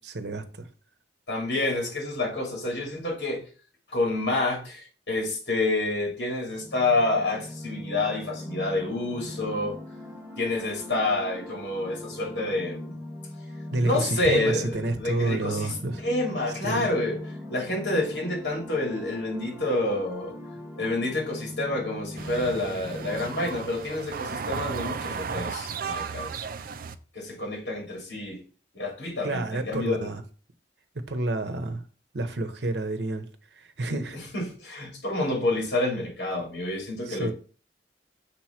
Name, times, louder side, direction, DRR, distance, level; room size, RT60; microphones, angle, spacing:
voice 1, 0.0-0.7 13.7-16.0 16.6-16.9 29.2-30.2 31.1-31.8 32.1-33.3 33.6-34.2 37.1-37.3, right 2 dB, 70° right, 0.9 m, -29 dB
voice 2, 1.3-3.4 3.9-9.8 10.4-13.0 13.8-15.7 16.0-17.2 17.5-20.3 20.7-26.4 27.1-28.4 28.7-30.1 33.9-37.3, left 2 dB, 75° left, 3.1 m, -28 dB
sound 1, 6.5-23.9, left 1 dB, 10° right, 1.3 m, -41 dB
sound 2, 22.2-27.0, right 5 dB, 55° right, 0.5 m, -34 dB
6.8 x 3.1 x 5.8 m
head